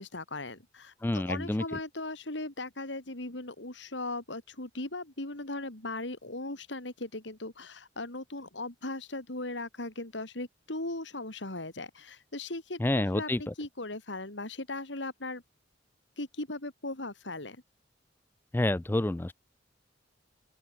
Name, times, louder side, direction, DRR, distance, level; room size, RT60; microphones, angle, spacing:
voice 1, 0.0-15.4 16.2-17.6, left 2 dB, 75° left, 3.6 m, -38 dB
voice 2, 1.0-1.6 12.8-13.5 18.5-19.3, left 1 dB, 10° left, 0.3 m, -28 dB
open air
head